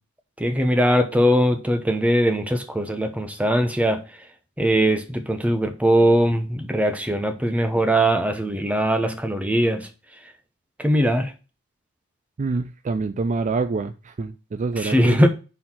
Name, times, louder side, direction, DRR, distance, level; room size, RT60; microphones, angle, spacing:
voice 1, 0.4-4.0 4.6-9.9 10.8-11.3 14.8-15.3, equal, 5° right, 0.9 m, -20 dB
voice 2, 12.4-15.3, right 4 dB, 35° right, 0.4 m, -26 dB
5.6 x 4.4 x 6.0 m
head